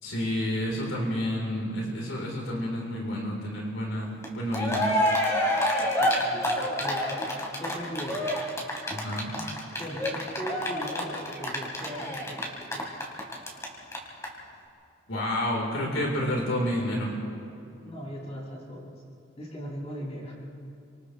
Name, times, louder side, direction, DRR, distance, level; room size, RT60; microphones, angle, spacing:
voice 1, 0.0-4.9 8.9-9.3 15.1-17.1, left 1 dB, 80° left, -2 dB, 4.2 m, -29 dB
Cheering, 4.2-4.3 4.5-13.6 13.9-14.0 14.2-14.3, left 1 dB, 15° left, 3.6 m, -27 dB
voice 2, 6.0-7.1 7.6-8.3 9.8-12.9 17.8-18.9 19.4-20.3, equal, 35° left, -5 dB, 6.8 m, -39 dB
29.5 x 26.5 x 3.4 m, 2.7 s
head